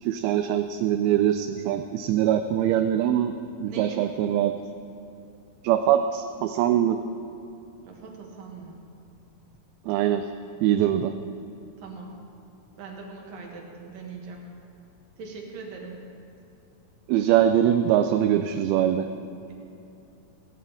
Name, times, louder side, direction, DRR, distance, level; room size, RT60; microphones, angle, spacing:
voice 1, 0.0-3.3 3.6-4.5 5.6-7.0 9.9-10.3 10.6-11.1 17.1-19.1, right 11 dB, 85° right, 8 dB, 2.4 m, -22 dB
voice 2, 3.6-4.1 7.9-8.8 11.8-12.3 12.8-14.4 15.2-16.1, right 4 dB, 65° right, 0 dB, 3.3 m, -41 dB
18.0 x 16.0 x 3.6 m, 2.8 s
omnidirectional pair, 4.4 m